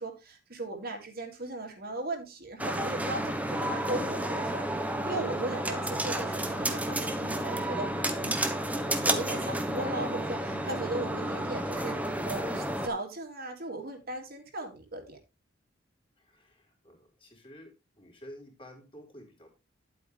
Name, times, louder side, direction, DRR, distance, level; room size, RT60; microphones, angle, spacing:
voice 1, 0.0-7.9 8.2-8.4 9.0-15.2, right 2 dB, 55° right, 2 dB, 2.6 m, -37 dB
sound 1, 2.6-12.9, right 1 dB, 10° right, 1.2 m, -31 dB
voice 2, 16.2-19.5, equal, 30° left, 0 dB, 3.9 m, -51 dB
11.0 x 8.4 x 3.4 m, 0.25 s
head